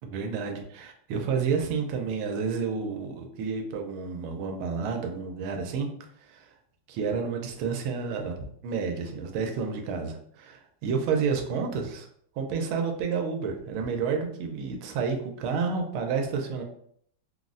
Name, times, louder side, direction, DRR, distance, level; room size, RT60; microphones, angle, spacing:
voice 1, 0.0-5.9 6.2-6.5 6.9-12.1 12.4-16.6, right 5 dB, 90° right, 3 dB, 1.4 m, -30 dB
3.8 x 2.0 x 2.5 m, 0.65 s
omnidirectional pair, 2.3 m